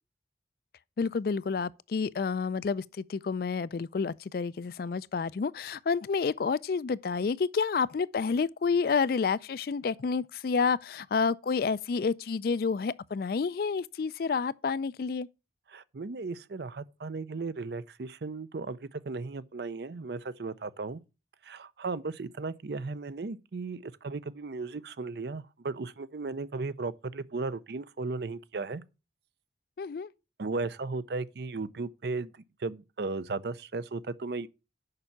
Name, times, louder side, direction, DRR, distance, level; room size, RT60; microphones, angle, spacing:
voice 1, 1.0-15.3 29.8-30.1, left 5 dB, 50° left, 0.3 m, -29 dB
voice 2, 15.7-21.0 21.4-28.8 30.4-34.5, right 3 dB, 60° right, 0.5 m, -36 dB
6.7 x 5.6 x 7.1 m
head